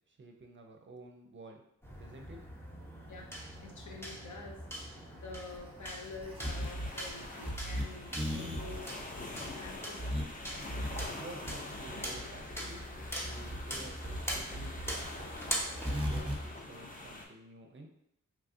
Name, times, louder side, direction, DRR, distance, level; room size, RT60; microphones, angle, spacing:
voice 1, 0.1-1.6 1.9-2.4 10.8-12.8 13.2-17.9, right 2 dB, 40° right, 3 dB, 0.5 m, -51 dB
sound 1, 1.8-16.6, equal, 10° left, 0.9 m, -43 dB
voice 2, 3.6-10.3, left 3 dB, 70° left, 0 dB, 0.7 m, -48 dB
sound 2, 5.4-16.4, equal, 15° right, 0.8 m, -38 dB
sound 3, 6.4-17.3, left 2 dB, 25° left, 0.6 m, -46 dB
3.0 x 2.3 x 2.6 m, 0.76 s
cardioid pair, 50°, 31 cm